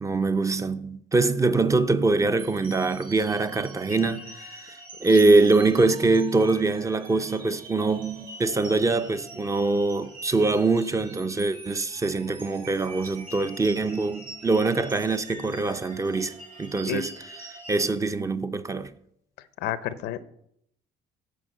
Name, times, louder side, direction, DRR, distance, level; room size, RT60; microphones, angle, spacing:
voice 1, 0.0-17.1 17.5-18.9, right 3 dB, 20° right, 0.6 m, -23 dB
sound 1, 2.4-17.9, right 2 dB, 55° right, 4.5 m, -44 dB
voice 2, 19.6-20.2, left 11 dB, 85° left, 0.7 m, -29 dB
10.0 x 4.6 x 7.8 m
cardioid pair, 110°, 17 cm